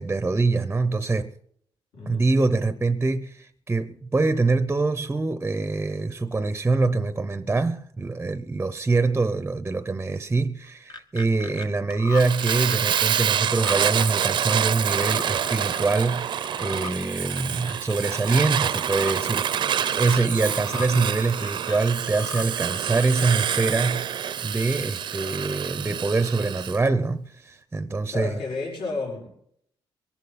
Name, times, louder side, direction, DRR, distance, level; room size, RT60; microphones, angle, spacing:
voice 1, 0.0-1.3 2.1-28.3, right 3 dB, 15° right, 0.7 m, -24 dB
voice 2, 1.9-2.4 28.0-29.3, left 3 dB, 75° left, 5.7 m, -31 dB
sound 1, 10.6-11.6 11.9-14.7 14.9-16.2 16.4-16.9 17.3-18.2 18.5-19.1 19.5-20.2 20.6-20.9 21.2-22.5 22.7-23.3, left 5 dB, 55° left, 1.4 m, -38 dB
Fire, 12.2-26.8, right 9 dB, 60° right, 0.6 m, -27 dB
22.5 x 11.5 x 4.2 m
cardioid pair, 115°, 9 cm